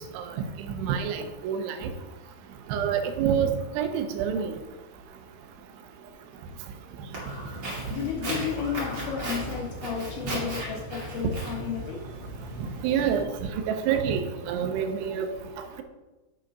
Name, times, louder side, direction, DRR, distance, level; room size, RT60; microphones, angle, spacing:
voice 1, 0.8-1.9 2.7-3.5 3.8-4.6 12.8-13.2 13.7-15.3, right 8 dB, 90° right, 7 dB, 3.1 m, -27 dB
Walk footsteps, 7.1-13.2, right 1 dB, 35° right, 1.8 m, -35 dB
voice 2, 7.9-12.0, left 7 dB, 70° left, -2 dB, 2.5 m, -33 dB
7.4 x 5.1 x 5.2 m, 1.1 s
omnidirectional pair, 5.3 m